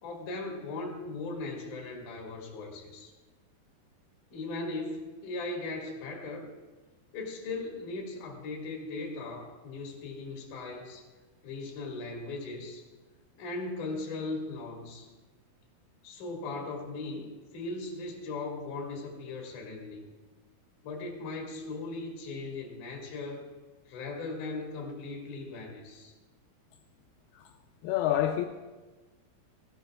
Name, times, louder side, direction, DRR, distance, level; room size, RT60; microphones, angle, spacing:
voice 1, 0.0-3.1 4.3-6.5 7.1-11.0 11.4-12.8 13.4-15.1 16.0-20.0 20.8-23.5 23.9-26.1, left 3 dB, 55° left, 3.1 m, -38 dB
voice 2, 27.8-28.5, left 12 dB, 80° left, 2.5 m, -27 dB
19.0 x 15.5 x 2.4 m
omnidirectional pair, 4.7 m